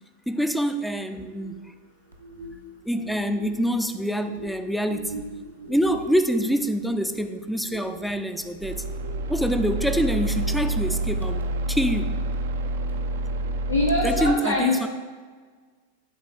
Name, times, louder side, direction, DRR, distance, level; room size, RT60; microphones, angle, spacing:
voice 1, 0.3-1.6 2.8-5.3 5.7-8.8 9.3-12.2 14.0-14.9, equal, ahead, 8 dB, 0.4 m, -26 dB
sound 1, 1.2-12.5 12.9-13.2, right 2 dB, 80° right, 0.8 m, -43 dB
sound 2, 8.6-14.3, right 1 dB, 60° right, 0.4 m, -28 dB
voice 2, 13.7-14.9, left 2 dB, 85° left, -5 dB, 1.0 m, -24 dB
10.5 x 3.9 x 4.2 m, 1.5 s
figure-of-eight pair, 90°, 0 cm